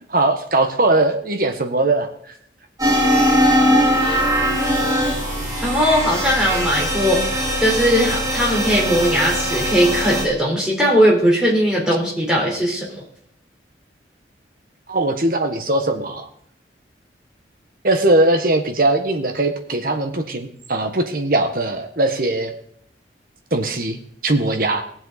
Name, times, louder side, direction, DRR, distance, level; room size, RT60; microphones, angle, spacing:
voice 1, 0.1-2.3 14.9-16.3 17.8-22.5 23.5-24.8, right 2 dB, 50° right, 6 dB, 1.4 m, -20 dB
sound 1, 2.8-10.2, equal, 20° right, 4.9 m, -20 dB
voice 2, 5.6-13.0, equal, 5° right, -4 dB, 4.1 m, -19 dB
18.0 x 7.6 x 4.2 m, 0.66 s
head